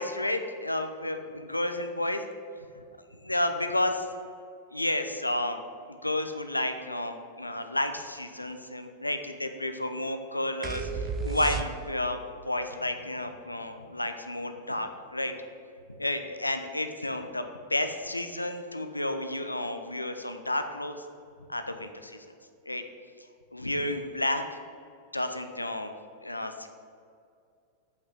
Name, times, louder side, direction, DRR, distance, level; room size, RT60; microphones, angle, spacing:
voice 1, 0.0-2.2 3.2-4.1 4.7-5.6 6.0-12.2 12.4-15.3 16.0-21.0 21.5-22.2 22.7-22.8 23.5-24.6 25.1-25.9 26.2-26.7, left 1 dB, 90° left, 7 dB, 0.8 m, -31 dB
sound 1, 10.6-12.2, right 5 dB, 30° right, 0.8 m, -33 dB
8.1 x 6.0 x 7.4 m, 2.3 s
figure-of-eight pair, 95°, 0 cm